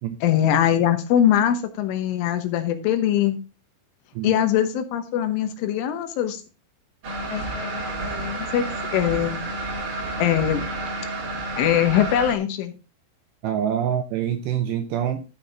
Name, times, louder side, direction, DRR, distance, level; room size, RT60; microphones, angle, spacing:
voice 1, 0.2-3.4 4.2-6.4 7.3-8.6 8.9-9.4 10.2-10.6 11.6-12.7, left 10 dB, 80° left, 3.5 m, -22 dB
sound 1, 7.0-12.4, right 2 dB, 50° right, 1.7 m, -30 dB
voice 2, 13.4-15.3, right 9 dB, 80° right, 2.6 m, -25 dB
13.5 x 5.8 x 3.9 m
omnidirectional pair, 5.7 m